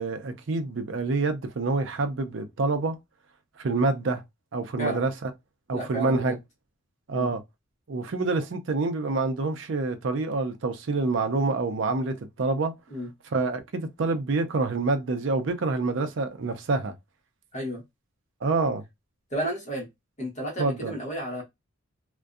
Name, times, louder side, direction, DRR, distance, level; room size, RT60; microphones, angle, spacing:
voice 1, 0.0-3.0 3.6-4.2 4.5-5.3 5.7-6.4 7.1-7.4 7.9-12.7 13.3-16.9 18.4-18.8 20.6-20.9, right 3 dB, 60° right, 0.5 m, -27 dB
voice 2, 5.7-6.3 7.1-7.3 12.9-13.1 17.5-17.8 19.3-19.9 20.2-21.4, right 1 dB, 35° left, 1.0 m, -32 dB
2.6 x 2.2 x 2.3 m
head